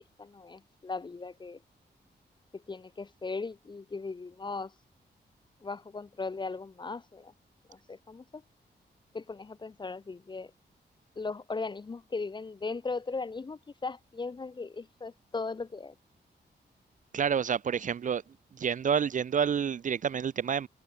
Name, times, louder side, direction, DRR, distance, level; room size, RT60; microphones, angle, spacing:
voice 1, 0.2-1.6 2.5-4.7 5.6-7.3 7.7-8.4 9.1-10.5 11.2-16.0, left 4 dB, 25° left, 0.4 m, -38 dB
voice 2, 17.1-18.2 18.6-20.7, right 7 dB, 45° right, 0.4 m, -28 dB
wide cardioid pair, 110°, 18 cm